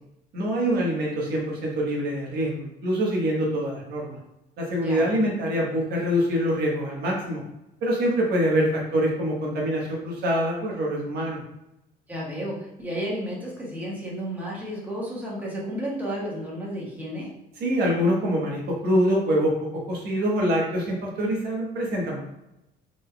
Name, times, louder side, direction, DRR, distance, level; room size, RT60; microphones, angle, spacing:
voice 1, 0.3-4.2 4.6-7.4 7.8-11.4 17.6-22.2, equal, 70° right, -2 dB, 1.1 m, -25 dB
voice 2, 12.1-17.3, equal, 10° right, -5 dB, 1.3 m, -32 dB
3.8 x 3.8 x 2.2 m, 0.90 s
cardioid pair, 110°, 17 cm